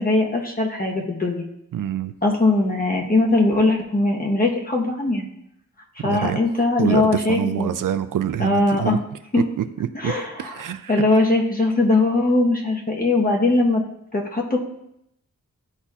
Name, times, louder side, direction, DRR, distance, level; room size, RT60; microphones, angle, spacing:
voice 1, 0.0-1.5 2.2-5.3 6.0-7.7 8.4-9.0 9.3-9.4 9.9-13.8 14.1-14.6, left 2 dB, 30° left, -1 dB, 1.1 m, -20 dB
voice 2, 1.7-2.1 6.0-6.4 6.8-9.0 10.0-10.1 10.4-10.9, right 10 dB, 80° right, 11 dB, 0.5 m, -25 dB
11.5 x 4.1 x 2.4 m, 0.79 s
wide cardioid pair, 120°, 32 cm